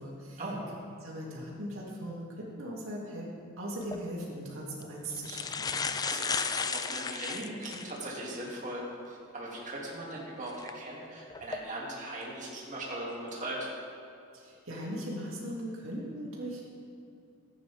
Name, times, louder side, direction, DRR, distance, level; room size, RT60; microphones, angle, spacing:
voice 1, 0.0-0.4 0.7-3.3 3.6-5.7 14.3-16.7, equal, 75° right, -4 dB, 2.5 m, -39 dB
sound 1, 3.8-4.0 4.8-4.9 5.2-8.0 8.5-8.6 10.5-10.7 11.3-11.6, left 5 dB, 20° left, 0.3 m, -34 dB
voice 2, 6.0-8.8 9.1-13.6, right 1 dB, 40° right, -5 dB, 2.3 m, -39 dB
14.5 x 9.1 x 3.5 m, 2.5 s
head